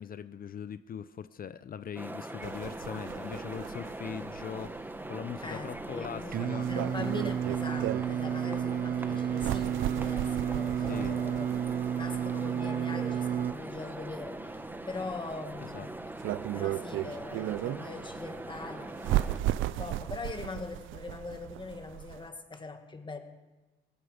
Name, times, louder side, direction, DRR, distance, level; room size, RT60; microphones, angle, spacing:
voice 1, 0.0-6.8 9.1-9.2 10.9-11.2 15.7-15.9, left 8 dB, 45° left, 13 dB, 0.6 m, -41 dB
sound 1, 2.0-19.4, right 1 dB, 10° right, 0.9 m, -41 dB
sound 2, 2.4-22.3, right 15 dB, 90° right, 0.5 m, -37 dB
voice 2, 5.4-11.5 11.9-16.1 16.5-18.9 19.5-23.2, left 3 dB, 25° left, 6 dB, 1.9 m, -42 dB
Singing, 6.3-13.5, right 9 dB, 45° right, 0.6 m, -31 dB
18.5 x 14.5 x 5.1 m, 1.1 s
cardioid pair, 90°, 20 cm